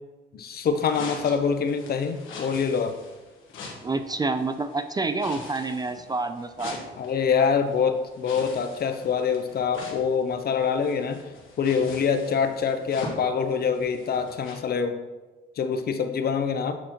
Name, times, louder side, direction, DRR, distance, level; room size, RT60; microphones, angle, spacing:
voice 1, 0.3-3.0 7.0-11.2 11.6-15.0 15.6-16.8, left 6 dB, 50° left, 8 dB, 0.6 m, -25 dB
sound 1, 0.7-14.5, left 3 dB, 85° left, 1.2 m, -43 dB
voice 2, 3.8-6.8, right 3 dB, 20° right, 9 dB, 0.3 m, -28 dB
7.8 x 4.2 x 2.9 m, 1.2 s
cardioid pair, 90°, 20 cm